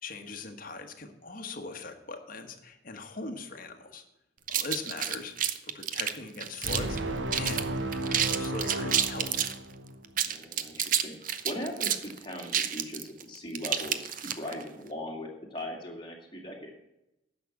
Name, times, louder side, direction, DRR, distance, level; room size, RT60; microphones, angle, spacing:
voice 1, 0.0-4.0 4.5-7.7 7.9-9.5, left 3 dB, 45° left, 6 dB, 1.3 m, -41 dB
sound 1, 4.5-7.0 7.3-7.6 7.9-9.6 10.0-14.6, right 9 dB, 45° right, 0.7 m, -29 dB
sound 2, 6.6-10.1, right 1 dB, 75° right, 1.0 m, -33 dB
voice 2, 10.2-16.7, left 1 dB, 25° left, 0 dB, 2.2 m, -39 dB
10.0 x 6.5 x 7.2 m, 0.90 s
head